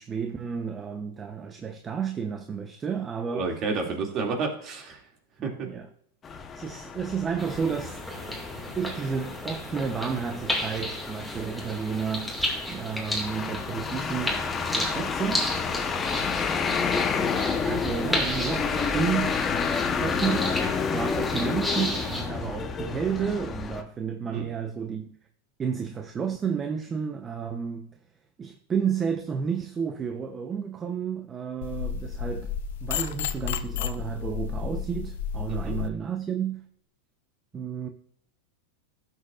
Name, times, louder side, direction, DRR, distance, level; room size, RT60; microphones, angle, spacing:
voice 1, 0.0-3.5 5.6-5.9 6.5-8.0 8.8-15.5 17.6-19.4 20.0-25.2 25.6-28.0 28.4-32.5 32.8-36.6 37.5-37.9, right 7 dB, 25° right, 0.8 m, -31 dB
voice 2, 3.3-5.0 5.4-5.7 24.3-24.5 35.5-35.8, right 4 dB, 40° right, 2.5 m, -30 dB
sound 1, 6.2-23.8, left 5 dB, 25° left, 1.0 m, -30 dB
sound 2, 7.4-22.2, left 1 dB, ahead, 2.2 m, -33 dB
sound 3, 31.6-35.9, left 8 dB, 70° left, 0.6 m, -32 dB
12.0 x 6.8 x 2.5 m
hypercardioid pair, 115°, 0 cm